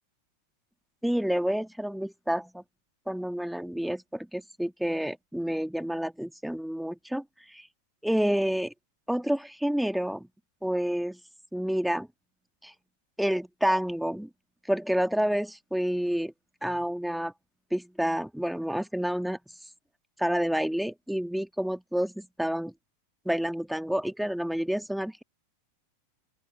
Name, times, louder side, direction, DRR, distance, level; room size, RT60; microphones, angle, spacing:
voice 1, 1.0-2.6 3.1-7.7 8.0-8.7 9.1-10.3 10.6-11.2 11.5-12.1 12.6-12.7 13.2-14.3 14.7-16.3 16.6-17.3 17.7-19.4 20.2-22.7 23.2-25.2, equal, ahead, 2.5 m, -29 dB
open air
figure-of-eight pair, 90°, 0 cm